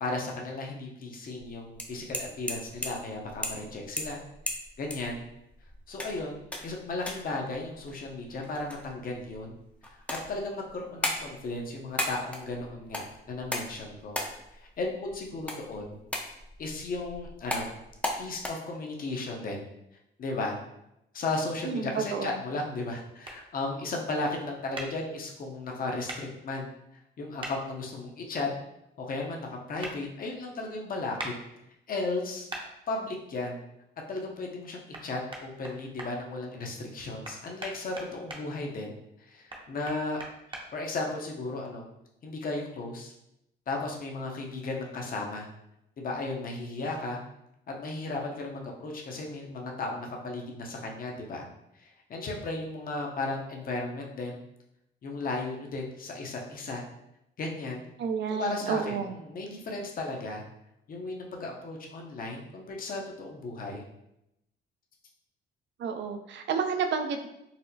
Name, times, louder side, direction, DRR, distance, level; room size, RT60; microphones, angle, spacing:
voice 1, 0.0-4.2 4.8-5.2 5.9-9.5 9.9-10.0 10.3-14.2 14.5-16.0 16.6-17.7 18.2-19.6 20.2-20.6 21.1-26.7 27.2-28.5 29.0-31.3 31.9-32.5 32.9-33.6 34.1-40.2 40.7-41.9 42.2-43.1 43.7-45.5 46.0-47.2 47.7-51.4 51.8-54.4 55.0-56.8 57.4-57.8 58.3-60.4 60.9-63.8, left 2 dB, 45° left, 0 dB, 0.7 m, -35 dB
sound 1, 1.4-18.5, left 1 dB, 5° left, 0.5 m, -38 dB
voice 2, 21.6-22.4 58.0-59.2 65.8-67.3, right 6 dB, 65° right, 6 dB, 0.4 m, -30 dB
sound 2, 23.2-23.4 24.7-24.9 26.1-26.2 27.4-27.5 29.8-29.9 31.2-31.3 32.5-32.6 34.9-35.0 35.3-36.1 37.2-38.4 39.5-40.6, right 2 dB, 25° right, 0.7 m, -38 dB
4.1 x 2.0 x 2.7 m, 0.84 s
cardioid pair, 90°, 20 cm